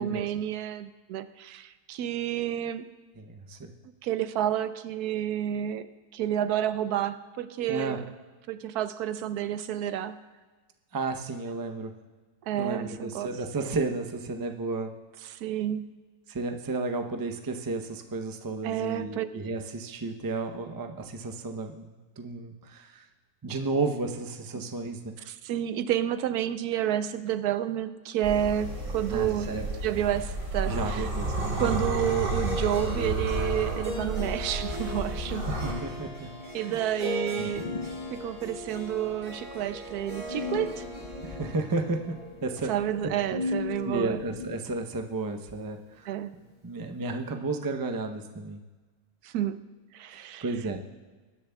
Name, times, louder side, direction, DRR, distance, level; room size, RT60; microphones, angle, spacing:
voice 1, 0.0-2.9 4.0-8.1 8.5-10.2 12.5-13.4 15.2-15.9 18.6-19.3 19.5-19.6 24.5-24.6 25.2-29.5 29.8-31.1 31.6-35.5 36.5-37.8 38.1-40.8 42.7-44.2 46.1-46.3 49.2-49.6 49.9-50.5, right 11 dB, 90° right, 12 dB, 1.1 m, -30 dB
voice 2, 3.2-3.7 7.7-8.0 10.9-11.9 12.6-14.9 16.3-23.0 23.4-25.1 29.1-29.8 30.7-31.7 35.5-36.3 36.6-36.8 37.4-37.5 41.2-42.7 43.0-43.1 43.8-46.1 46.6-48.6 50.1-50.8, right 3 dB, 35° right, 5 dB, 0.3 m, -33 dB
sound 1, 28.2-35.7, right 1 dB, 65° right, 3.0 m, -32 dB
Harp, 32.4-44.6, equal, 20° right, 2.2 m, -40 dB
sound 2, 32.7-44.5, left 4 dB, 60° left, 0.4 m, -40 dB
22.0 x 10.5 x 2.3 m, 1.3 s
omnidirectional pair, 1.6 m